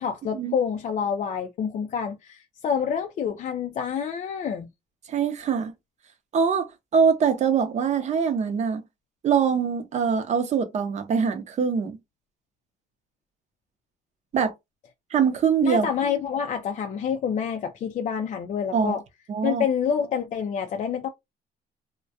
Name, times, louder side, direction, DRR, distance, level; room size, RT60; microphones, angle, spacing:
voice 1, 0.0-4.7 15.6-19.0 19.4-21.1, left 7 dB, 45° left, 0.4 m, -27 dB
voice 2, 5.1-5.7 6.3-8.8 9.2-12.0 14.3-14.5 15.1-15.9 18.7-19.0 19.3-19.6, right 6 dB, 45° right, 0.6 m, -23 dB
2.2 x 2.1 x 2.6 m
cardioid pair, 110°, 17 cm